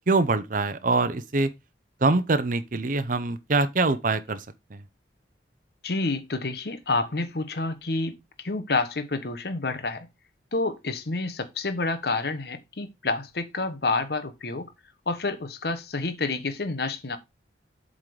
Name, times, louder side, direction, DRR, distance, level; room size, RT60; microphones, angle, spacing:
voice 1, 0.1-1.5 2.0-4.5 4.7-4.8, right 3 dB, 50° right, 0.7 m, -24 dB
voice 2, 5.8-10.1 10.5-14.7 15.1-17.2, left 3 dB, 60° left, 1.1 m, -29 dB
7.8 x 3.9 x 4.9 m
head